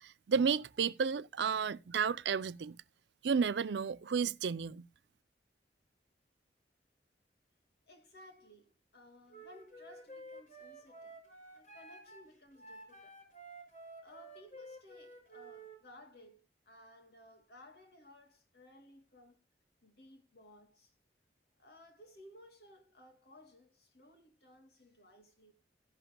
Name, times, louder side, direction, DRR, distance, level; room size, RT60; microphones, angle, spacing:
voice 1, 0.0-2.8 3.2-4.9, right 6 dB, 75° right, 0.5 m, -32 dB
voice 2, 7.9-11.2 11.5-13.2 14.0-19.4 19.8-20.9 21.6-25.5, left 1 dB, 65° left, 2.7 m, -58 dB
Wind instrument woodwind instrument, 9.3-15.8, right 1 dB, 45° left, 6.4 m, -52 dB
15.5 x 11.0 x 2.2 m
head